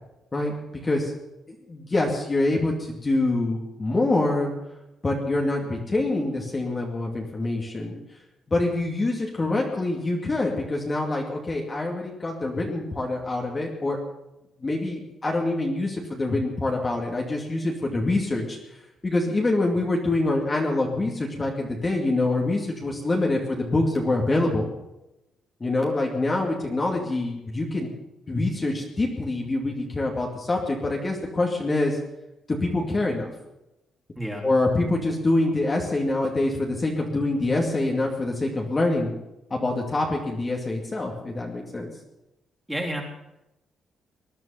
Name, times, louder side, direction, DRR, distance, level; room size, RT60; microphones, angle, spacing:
voice 1, 0.3-1.1 1.5-4.5 5.0-8.0 8.5-14.0 14.6-18.6 19.0-24.7 25.6-27.9 28.3-32.0 32.5-33.3 34.4-39.1 39.5-41.9, left 2 dB, 25° left, -1 dB, 2.5 m, -25 dB
voice 2, 34.1-34.5 42.7-43.0, right 1 dB, 5° right, -1 dB, 3.4 m, -30 dB
20.5 x 11.0 x 5.8 m, 0.92 s
cardioid pair, 110°, 0 cm